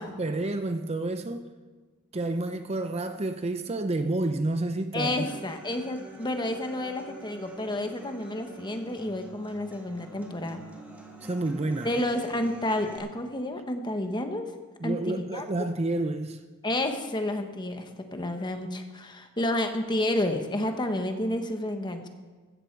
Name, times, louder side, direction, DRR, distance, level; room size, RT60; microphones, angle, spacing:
voice 1, 0.0-1.5 2.1-5.3 11.2-11.9 14.8-16.4, right 2 dB, 30° right, 0.6 m, -29 dB
voice 2, 4.9-10.6 11.8-14.5 14.8-15.5 16.6-22.1, left 1 dB, 20° left, 1.2 m, -30 dB
Human voice / Acoustic guitar, 5.0-13.0, right 2 dB, 10° right, 2.0 m, -47 dB
14.5 x 14.5 x 4.6 m
head